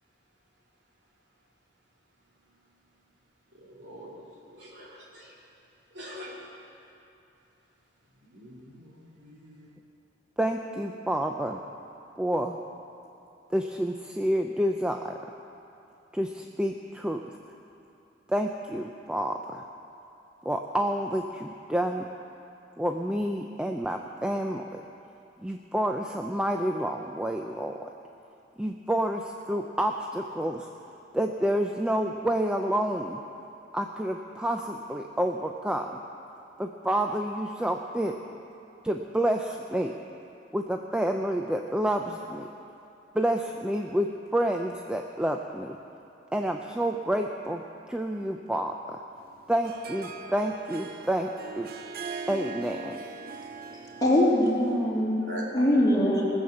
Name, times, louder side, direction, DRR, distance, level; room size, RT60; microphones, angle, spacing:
voice 1, 3.5-4.2 4.5-5.4 5.9-6.4 8.2-9.8 55.2-55.4, right 1 dB, 70° right, -4 dB, 3.0 m, -44 dB
voice 2, 10.4-11.6 12.2-12.6 13.5-15.2 16.1-17.2 18.3-19.6 20.4-22.1 22.8-24.8 25.4-27.9 28.6-30.7 31.1-33.2 33.7-35.9 36.6-38.2 38.8-39.9 40.5-42.5 43.1-45.8 46.3-47.6 47.9-49.0 49.5-51.3 51.6-51.7 52.3-53.0, right 1 dB, 5° right, 3 dB, 0.4 m, -29 dB
Harp, 49.2-54.6, right 4 dB, 50° right, 0.6 m, -40 dB
voice 3, 54.0-55.2 55.5-56.2, left 1 dB, 20° left, -6 dB, 2.9 m, -22 dB
19.5 x 7.2 x 7.7 m, 2.7 s
head